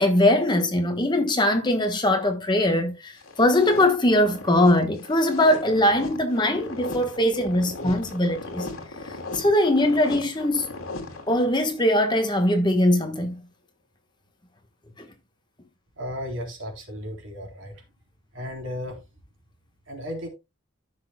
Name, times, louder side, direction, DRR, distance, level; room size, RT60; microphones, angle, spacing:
voice 1, 0.0-3.1 3.4-8.7 9.3-10.7 11.3-13.4, left 1 dB, 20° left, 1.2 m, -21 dB
sound 1, 3.2-11.8, left 2 dB, 75° left, 2.7 m, -37 dB
voice 2, 16.0-17.8 18.3-19.0 19.9-20.3, left 1 dB, 60° right, 3.6 m, -34 dB
15.0 x 6.2 x 2.2 m
head